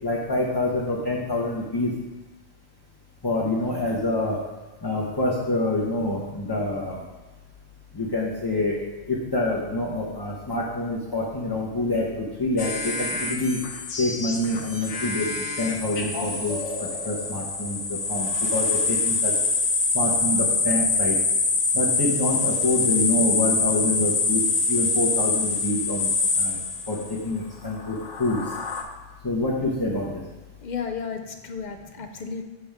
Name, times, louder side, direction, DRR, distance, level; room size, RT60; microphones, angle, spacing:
voice 1, 0.0-1.9 3.2-4.4 4.8-7.0 7.9-8.8 9.1-13.6 14.0-19.3 19.9-21.2 21.7-24.4 24.7-26.1 26.4-26.6 26.9-28.4 29.2-30.2, left 2 dB, 20° left, -6 dB, 1.1 m, -26 dB
sound 1, 12.6-27.2 27.8-28.8, left 4 dB, 75° left, 1.2 m, -25 dB
voice 2, 30.6-32.4, left 6 dB, 50° left, 5 dB, 0.5 m, -33 dB
7.4 x 7.0 x 3.6 m, 1.1 s
omnidirectional pair, 1.3 m